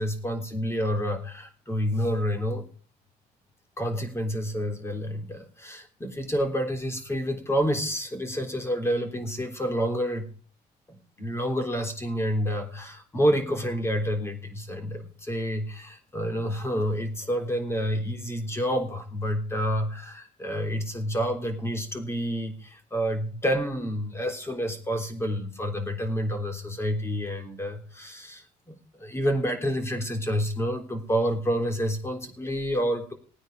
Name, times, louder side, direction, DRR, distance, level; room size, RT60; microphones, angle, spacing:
voice 1, 0.0-2.6 3.8-10.3 10.9-33.1, equal, 15° left, 4 dB, 3.4 m, -29 dB
17.0 x 9.3 x 4.7 m, 0.41 s
cardioid pair, 110°, 17 cm